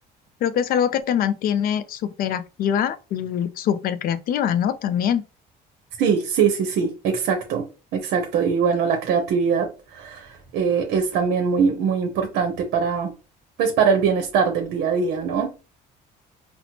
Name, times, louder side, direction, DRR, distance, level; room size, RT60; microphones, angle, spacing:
voice 1, 0.4-5.2, left 9 dB, 60° left, 0.4 m, -23 dB
voice 2, 6.0-7.7 7.9-13.1 13.6-15.5, right 6 dB, 80° right, 0.7 m, -22 dB
4.2 x 2.0 x 2.8 m
cardioid pair, 110°, 17 cm